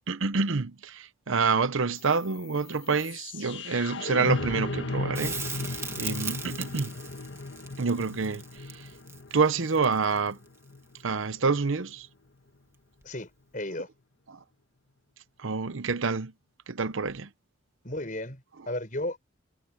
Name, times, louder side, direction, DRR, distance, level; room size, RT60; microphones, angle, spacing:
voice 1, 0.0-6.9 7.8-8.4 8.7-8.9 9.3-10.4 11.0-12.1 14.3-14.4 15.4-16.3 16.7-17.3, right 4 dB, 75° right, 0.8 m, -28 dB
sound 1, 2.0-12.0, left 3 dB, 65° left, 1.6 m, -37 dB
Crackle, 5.1-10.3 13.0-13.1, right 4 dB, 15° right, 1.6 m, -38 dB
voice 2, 13.0-13.9 17.8-19.2, left 1 dB, 40° left, 6.3 m, -34 dB
head